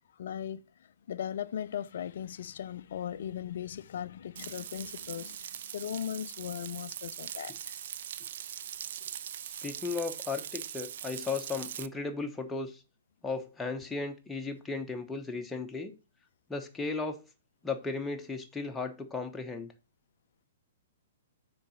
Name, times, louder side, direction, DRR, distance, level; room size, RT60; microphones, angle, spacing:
voice 1, 0.2-7.8, left 9 dB, 55° left, 0.4 m, -38 dB
Frying (food), 4.4-11.9, right 10 dB, 50° right, 0.3 m, -41 dB
voice 2, 9.6-12.8 13.2-15.9 16.5-17.2 17.6-19.7, left 4 dB, 10° left, 0.9 m, -35 dB
6.5 x 3.9 x 5.5 m
figure-of-eight pair, 110°, 0 cm